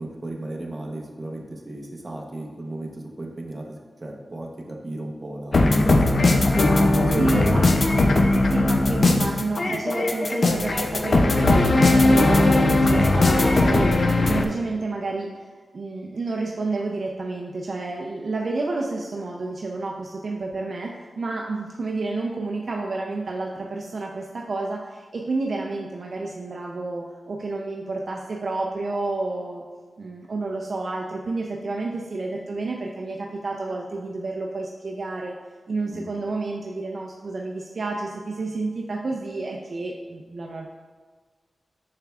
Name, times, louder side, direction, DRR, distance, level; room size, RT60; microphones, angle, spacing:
voice 1, 0.0-3.6 4.0-6.4 7.0-7.6 9.6-9.8 35.8-36.1, right 1 dB, 30° right, 0 dB, 0.9 m, -34 dB
sound 1, 5.5-14.4, left 2 dB, 50° left, 0.5 m, -19 dB
voice 2, 7.2-29.6 30.0-35.3 35.7-40.7, right 3 dB, 55° right, 0 dB, 0.5 m, -30 dB
7.3 x 5.8 x 2.4 m, 1.5 s
wide cardioid pair, 100°, 0 cm